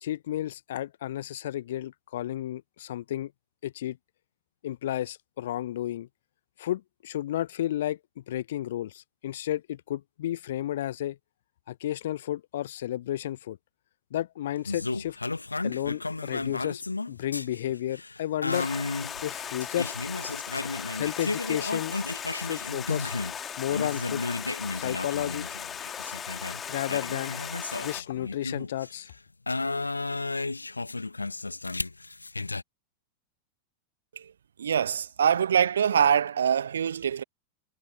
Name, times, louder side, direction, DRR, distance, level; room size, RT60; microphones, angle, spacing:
voice 1, 0.0-3.3 3.6-4.0 4.6-6.1 6.6-11.2 11.7-13.6 14.1-15.2 15.6-18.7 19.2-19.9 20.9-21.9 22.4-23.1 23.6-24.2 24.7-25.5 26.7-27.3 27.8-29.1, left 12 dB, 60° left, 1.0 m, -32 dB
sound 1, 14.6-23.4 23.7-29.0 29.5-32.6, left 3 dB, 80° left, 1.7 m, -33 dB
Stream, 18.5-28.0, left 8 dB, 25° left, 2.3 m, -38 dB
voice 2, 34.6-37.2, right 8 dB, 65° right, 1.1 m, -24 dB
figure-of-eight pair, 90°, 0 cm